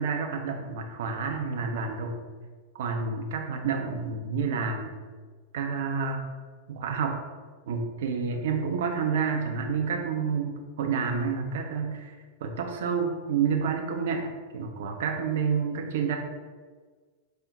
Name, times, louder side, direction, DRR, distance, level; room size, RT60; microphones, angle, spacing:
voice 1, 0.0-2.2 2.7-4.9 5.5-6.3 6.7-7.2 7.7-12.1 12.4-16.2, right 5 dB, 55° right, 3 dB, 0.6 m, -29 dB
5.3 x 2.1 x 3.8 m, 1.5 s
figure-of-eight pair, 90°, 0 cm